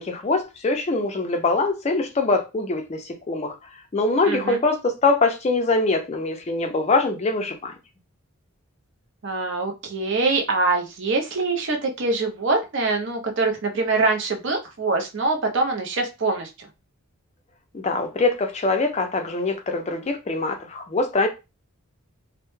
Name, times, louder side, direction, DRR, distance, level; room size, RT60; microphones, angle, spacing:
voice 1, 0.0-3.5 3.9-7.7 17.7-21.3, left 3 dB, 30° left, 0.3 m, -23 dB
voice 2, 4.3-4.6 9.2-16.7, right 3 dB, 55° right, 0.5 m, -24 dB
2.1 x 2.0 x 3.0 m
head